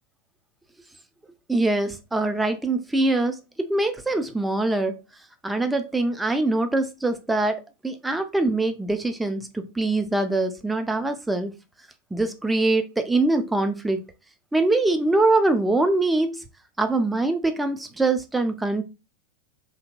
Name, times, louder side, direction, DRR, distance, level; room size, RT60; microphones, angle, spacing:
voice 1, 1.5-5.0 5.4-11.5 12.1-14.1 14.5-16.4 16.8-18.8, right 2 dB, 5° right, 0.4 m, -23 dB
2.8 x 2.7 x 2.2 m
figure-of-eight pair, 90°, 0 cm